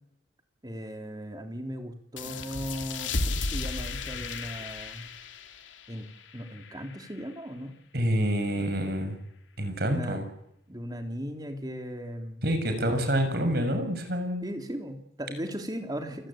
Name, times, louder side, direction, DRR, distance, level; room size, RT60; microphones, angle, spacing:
voice 1, 0.6-5.1 5.9-6.1 6.3-7.7 9.8-10.2 10.7-13.1 14.4-16.3, equal, 20° right, 5 dB, 3.3 m, -37 dB
sound 1, 2.2-7.4, left 3 dB, 85° left, 2.6 m, -35 dB
voice 2, 7.9-9.2 9.6-10.2 12.4-14.4, equal, 55° right, 7 dB, 6.5 m, -27 dB
29.5 x 18.5 x 8.9 m, 0.82 s
head